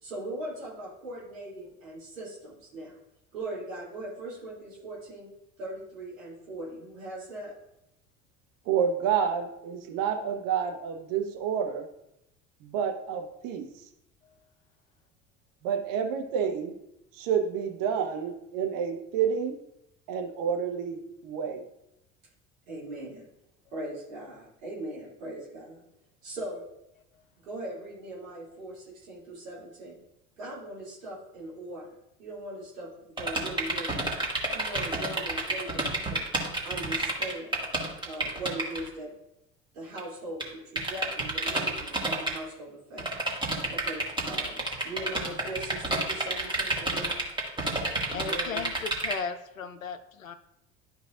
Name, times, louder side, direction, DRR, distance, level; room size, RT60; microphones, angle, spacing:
voice 1, 0.0-3.0 3.3-5.3 5.6-7.5 22.7-23.3 23.7-25.8 26.2-26.6 27.4-30.0 30.4-31.8 32.2-34.0 34.5-36.2 36.6-37.6 38.0-39.1 39.7-43.1 43.7-47.2 48.3-48.6, right 1 dB, 75° right, -7 dB, 2.7 m, -40 dB
voice 2, 8.7-11.9 12.6-13.7 15.6-16.7 17.1-19.5 20.1-21.6, right 7 dB, 55° right, 5 dB, 1.1 m, -29 dB
sound 1, 33.2-38.9 40.0-40.1 40.4-40.5 40.8-42.4 43.0-49.1, right 2 dB, 10° right, 2.0 m, -29 dB
voice 3, 48.1-50.3, left 5 dB, 90° left, 9 dB, 0.6 m, -36 dB
12.0 x 5.3 x 2.5 m, 0.82 s
figure-of-eight pair, 65°, 39 cm